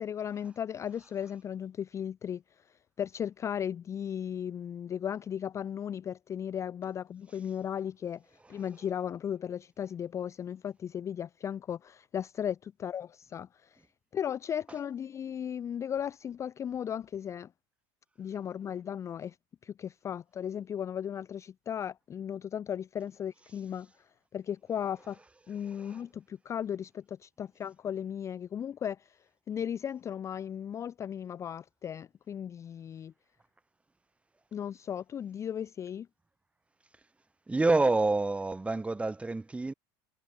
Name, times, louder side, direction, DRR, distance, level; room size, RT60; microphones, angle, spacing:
voice 1, 0.0-13.8 14.1-17.5 18.2-19.4 19.6-25.2 25.5-29.2 29.5-33.1 34.5-36.1, left 9 dB, 25° left, 0.4 m, -36 dB
voice 2, 25.7-26.0 37.5-39.7, right 3 dB, 10° right, 1.6 m, -28 dB
supercardioid pair, 130°, 12 cm